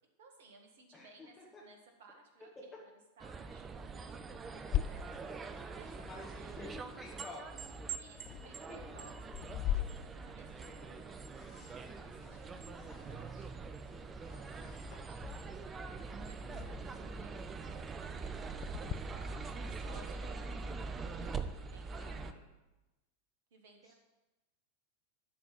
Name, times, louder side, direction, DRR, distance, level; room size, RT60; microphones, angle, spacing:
voice 1, 0.2-1.4 1.6-2.9 3.2-6.6 8.0-10.9 11.5-15.9 16.3-20.6 21.1-22.4 23.5-23.9, right 3 dB, 60° right, 3 dB, 1.6 m, -61 dB
voice 2, 0.9-1.6 3.5-3.6 5.9-8.0 8.7-9.0 10.5-11.0 11.8-12.9 14.2-14.8 16.6-17.1 22.0-22.4 23.8-23.9, left 2 dB, 15° left, -5 dB, 1.6 m, -53 dB
sound 1, 3.2-22.3, right 4 dB, 20° right, 0.6 m, -44 dB
sound 2, 4.7-18.9, left 11 dB, 35° left, 0.4 m, -43 dB
12.0 x 4.1 x 7.3 m, 1.0 s
figure-of-eight pair, 90°, 0 cm